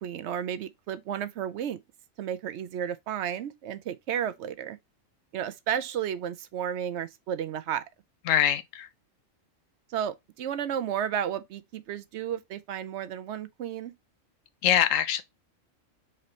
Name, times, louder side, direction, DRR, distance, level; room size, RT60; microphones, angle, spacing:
voice 1, 0.0-1.8 2.2-4.8 5.3-7.8 9.9-13.9, right 9 dB, 70° right, 0.8 m, -32 dB
voice 2, 8.2-8.9 14.6-15.2, left 10 dB, 85° left, 1.0 m, -23 dB
4.3 x 3.9 x 3.1 m
omnidirectional pair, 1.3 m